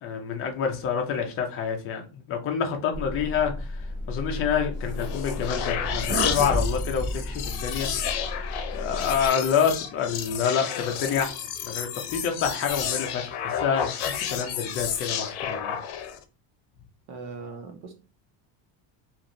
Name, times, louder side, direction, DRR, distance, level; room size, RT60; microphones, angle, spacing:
voice 1, 0.0-7.9 8.2-15.8, left 7 dB, 30° left, 3 dB, 0.4 m, -28 dB
sound 1, 2.9-9.3, equal, 40° right, 1.2 m, -32 dB
sound 2, 4.8-16.2, left 8 dB, 80° left, 0.7 m, -31 dB
voice 2, 17.1-17.9, right 4 dB, 90° right, 4 dB, 1.0 m, -39 dB
3.0 x 2.5 x 2.5 m, 0.33 s
cardioid pair, 175°, 49 cm